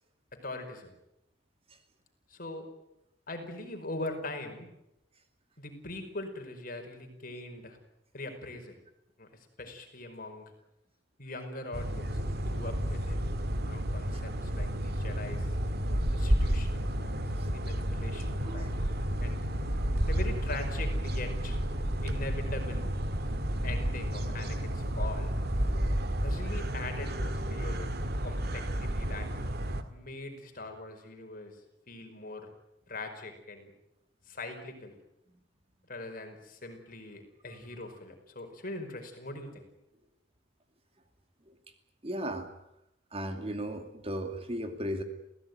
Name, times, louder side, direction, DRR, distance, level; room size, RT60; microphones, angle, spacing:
voice 1, 0.3-0.9 2.3-2.7 3.3-4.7 5.6-7.8 8.1-8.8 9.2-10.5 11.2-13.2 13.7-15.5 16.1-17.1 17.5-19.4 20.1-21.6 22.0-22.9 23.6-25.3 26.2-27.9 28.2-29.3 29.9-31.6 31.9-32.5 32.9-33.7 34.3-35.0 35.9-39.6, left 2 dB, 45° left, 5 dB, 5.1 m, -42 dB
sound 1, 11.7-29.8, equal, 55° right, 2.0 m, -31 dB
voice 2, 18.4-18.7 19.8-19.9 41.5-41.6 42.0-42.5 43.1-45.0, equal, 30° right, 6 dB, 2.6 m, -36 dB
28.5 x 16.5 x 9.6 m, 0.87 s
head